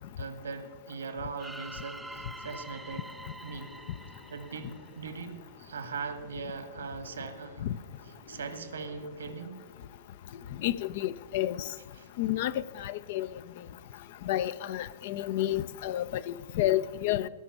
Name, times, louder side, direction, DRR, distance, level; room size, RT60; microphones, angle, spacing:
voice 1, 0.2-3.0 3.4-3.7 4.3-7.7 8.0-9.6 12.0-12.1, right 5 dB, 70° right, 1.5 m, -40 dB
sound 1, 1.4-5.4, right 1 dB, 5° right, 0.6 m, -46 dB
sound 2, 1.9-9.4, left 2 dB, 85° left, 3.5 m, -54 dB
voice 2, 10.6-11.6 12.2-12.5 12.8-13.3 14.3-17.3, left 13 dB, 50° left, 0.5 m, -30 dB
16.5 x 6.0 x 8.6 m
figure-of-eight pair, 100°, 0 cm